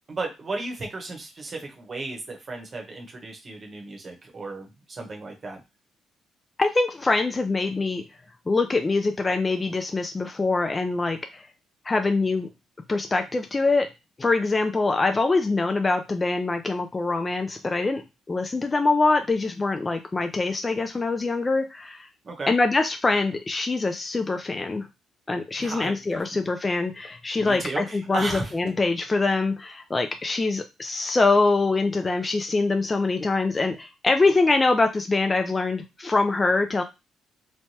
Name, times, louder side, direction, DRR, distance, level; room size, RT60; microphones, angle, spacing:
voice 1, 0.1-5.6 22.2-22.5 25.6-26.3 27.4-28.5, right 3 dB, 40° right, 2 dB, 0.9 m, -34 dB
voice 2, 6.6-8.0 8.5-11.5 11.8-12.5 12.9-13.9 14.2-18.0 18.3-22.1 22.5-24.9 25.3-36.8, left 3 dB, 25° left, 6 dB, 0.3 m, -24 dB
3.1 x 2.2 x 2.7 m, 0.25 s
cardioid pair, 90°, 0 cm